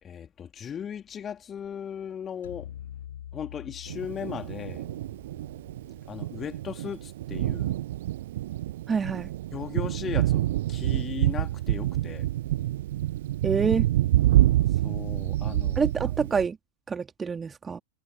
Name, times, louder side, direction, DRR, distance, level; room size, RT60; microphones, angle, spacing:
voice 1, 0.0-2.7 3.3-4.9 6.1-7.8 9.5-12.3 14.7-15.9, left 8 dB, 25° left, 3.3 m, -37 dB
sound 1, 2.4-6.8, left 11 dB, 60° left, 3.9 m, -45 dB
Thunder, 3.9-16.5, right 14 dB, 55° right, 0.8 m, -27 dB
voice 2, 8.9-9.3 13.4-13.9 15.8-16.6 16.9-17.8, right 5 dB, 15° right, 2.6 m, -27 dB
figure-of-eight pair, 90°, 0 cm